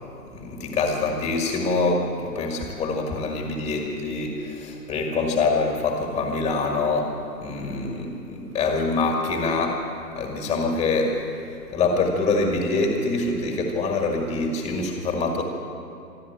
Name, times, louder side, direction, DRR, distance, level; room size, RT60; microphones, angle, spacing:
voice 1, 0.3-7.1 7.4-9.8 10.1-11.3 11.7-15.4, left 3 dB, 10° left, 2 dB, 1.7 m, -25 dB
26.0 x 11.5 x 9.0 m, 2.7 s
figure-of-eight pair, 140°, 50 cm